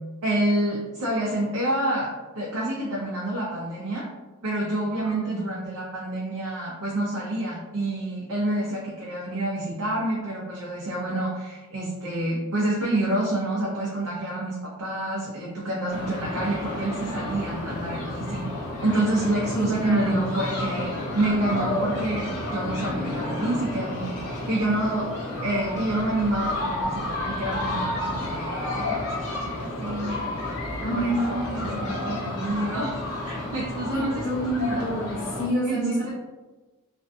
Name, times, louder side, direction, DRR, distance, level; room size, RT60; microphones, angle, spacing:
voice 1, 0.2-2.1 2.4-4.1 4.4-18.4 18.8-25.1 25.4-30.6 30.9-34.9 35.6-36.1, right 1 dB, 85° right, -5 dB, 0.5 m, -28 dB
voice 2, 5.0-5.4 19.5-20.2 30.8-31.9 33.9-36.1, right 1 dB, 40° left, -9 dB, 1.0 m, -28 dB
sound 1, 15.9-35.5, left 1 dB, 75° left, 0.6 m, -31 dB
2.4 x 2.2 x 2.5 m, 1.2 s
head